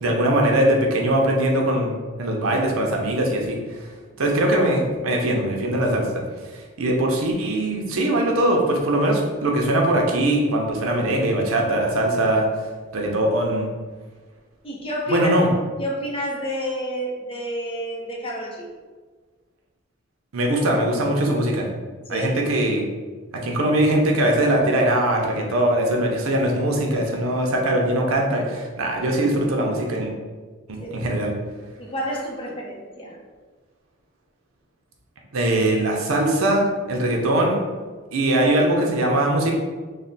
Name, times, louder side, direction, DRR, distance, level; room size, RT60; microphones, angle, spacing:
voice 1, 0.0-1.9 2.2-3.6 4.2-6.1 6.5-12.5 12.9-13.7 15.1-15.5 20.3-21.7 22.1-22.9 23.4-30.1 30.7-31.3 35.3-37.6 38.1-39.5, right 1 dB, 85° right, 0 dB, 0.6 m, -21 dB
voice 2, 14.6-15.3 15.8-18.7 22.1-22.3 30.8-31.1 31.8-33.2, equal, 25° left, -2 dB, 0.6 m, -29 dB
3.2 x 2.1 x 3.9 m, 1.4 s
head